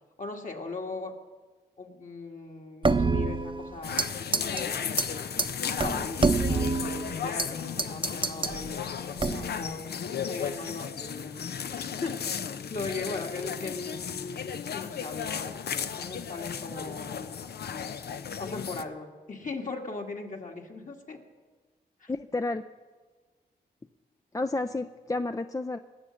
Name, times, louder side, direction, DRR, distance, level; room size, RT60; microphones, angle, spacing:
voice 1, 0.2-1.2 1.8-5.3 5.8-8.9 9.2-9.8 10.1-12.4 12.7-17.3 18.4-21.2 22.0-22.1, left 3 dB, 45° left, 2 dB, 2.1 m, -39 dB
sound 1, 2.8-4.1 4.3-4.6 5.0-5.1 5.4-5.5 5.8-7.5 7.8-8.6 9.2-9.6, right 3 dB, 30° right, 0.8 m, -26 dB
sound 2, 3.8-18.8, left 7 dB, 65° left, 0.7 m, -35 dB
voice 2, 22.1-22.6 24.3-25.8, left 2 dB, 20° left, 9 dB, 0.5 m, -30 dB
19.0 x 7.4 x 6.4 m, 1.4 s
cardioid pair, 50°, 18 cm